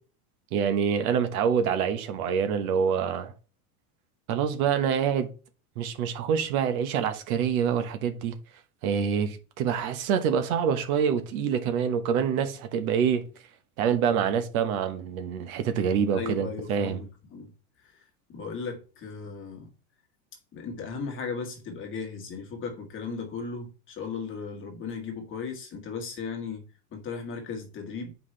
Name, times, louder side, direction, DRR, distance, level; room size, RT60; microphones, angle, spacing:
voice 1, 0.5-3.3 4.3-5.3 5.8-8.4 8.8-13.3 13.8-17.0, right 7 dB, 75° right, 1.3 m, -26 dB
voice 2, 16.1-17.5 17.8-18.0 18.3-19.7 20.5-28.1, left 5 dB, 30° left, 1.5 m, -36 dB
7.7 x 4.8 x 3.3 m
supercardioid pair, 150°, 43 cm